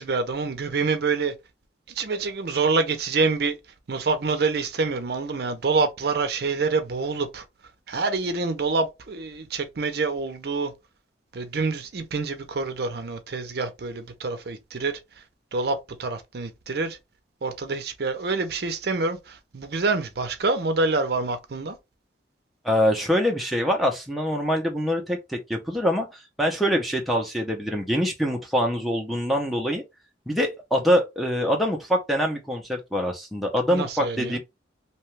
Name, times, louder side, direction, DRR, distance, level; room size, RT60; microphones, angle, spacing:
voice 1, 0.0-1.3 1.9-3.6 3.9-7.4 7.9-10.7 11.3-15.0 15.5-17.0 17.4-21.8 33.7-34.4, right 4 dB, 55° right, 0.5 m, -26 dB
voice 2, 22.6-29.8 30.3-34.4, equal, ahead, 0.5 m, -24 dB
2.8 x 2.2 x 3.1 m
head